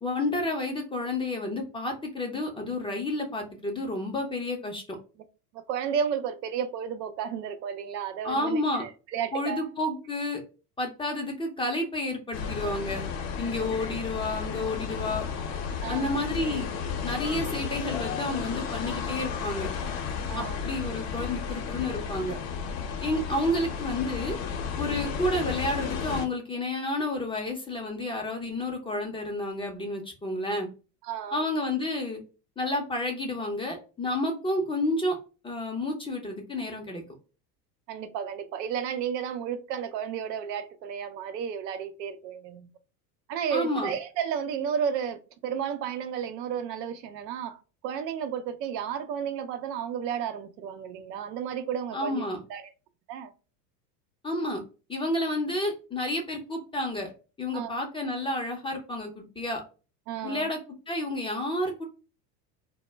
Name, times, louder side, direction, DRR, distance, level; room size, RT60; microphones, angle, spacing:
voice 1, 0.0-5.0 8.2-8.8 9.3-10.4 10.8-13.0 13.4-15.3 15.9-16.7 17.0-19.7 20.3-22.4 23.0-24.4 24.8-30.7 31.3-32.2 32.6-35.2 35.4-37.0 43.5-43.9 51.9-52.4 54.2-54.6 54.9-57.1 57.4-59.6 60.2-60.6 60.9-61.8, left 1 dB, 10° left, 0.4 m, -30 dB
voice 2, 5.5-9.7 13.6-13.7 15.8-16.1 20.3-20.6 31.0-31.5 37.9-42.7 43.3-52.7 53.1-53.3 57.5-57.7 60.1-60.5, right 8 dB, 85° right, 0.6 m, -33 dB
sound 1, 12.3-26.3, left 6 dB, 60° left, 0.7 m, -33 dB
2.1 x 2.1 x 3.3 m
hypercardioid pair, 95°, 48 cm